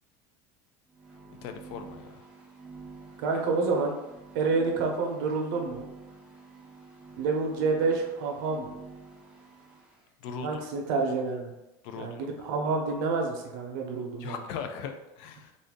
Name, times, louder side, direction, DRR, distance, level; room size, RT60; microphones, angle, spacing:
sound 1, 0.9-10.0, right 4 dB, 10° right, 0.5 m, -49 dB
voice 1, 1.4-2.2 10.2-10.6 11.8-12.2 14.2-15.5, left 6 dB, 50° left, 6 dB, 0.4 m, -39 dB
voice 2, 3.2-3.9 4.3-5.9 7.2-8.7 10.4-11.5 11.9-14.3, right 4 dB, 70° right, 1 dB, 0.7 m, -28 dB
2.6 x 2.5 x 3.6 m, 0.92 s
cardioid pair, 160°, 10 cm